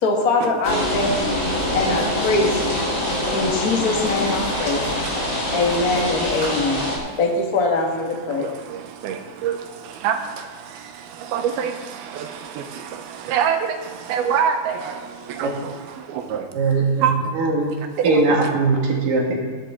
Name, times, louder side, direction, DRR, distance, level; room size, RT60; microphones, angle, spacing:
voice 1, 0.0-1.5 1.7-2.8 3.3-4.8 5.5-6.9 7.2-8.5, left 3 dB, 50° left, 1.1 m, -22 dB
sound 1, 0.6-7.0, left 1 dB, 20° left, 3.3 m, -24 dB
voice 2, 5.0-5.5 7.0-7.2 7.9-16.5 17.0-17.4 17.8-18.3, right 7 dB, 80° right, 2.7 m, -27 dB
voice 3, 16.5-17.1 17.4-17.7 18.0-19.4, right 3 dB, 65° right, 3.6 m, -20 dB
19.0 x 10.0 x 3.8 m
omnidirectional pair, 4.4 m